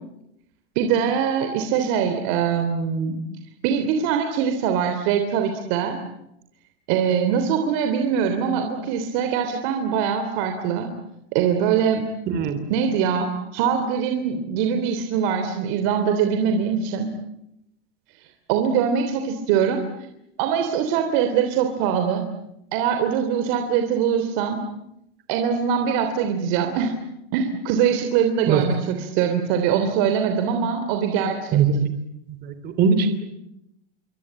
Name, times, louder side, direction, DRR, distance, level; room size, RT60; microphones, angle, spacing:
voice 1, 0.7-3.2 3.6-6.0 6.9-10.9 11.3-12.0 12.7-17.1 18.5-19.8 20.4-22.2 22.7-24.6 25.3-26.9 27.3-31.6, right 7 dB, 50° right, 6 dB, 3.3 m, -22 dB
voice 2, 12.3-12.6 28.5-28.6 31.5-31.9 32.4-33.3, right 6 dB, 30° right, 10 dB, 3.0 m, -20 dB
27.5 x 24.5 x 8.9 m, 0.83 s
supercardioid pair, 160°, 31 cm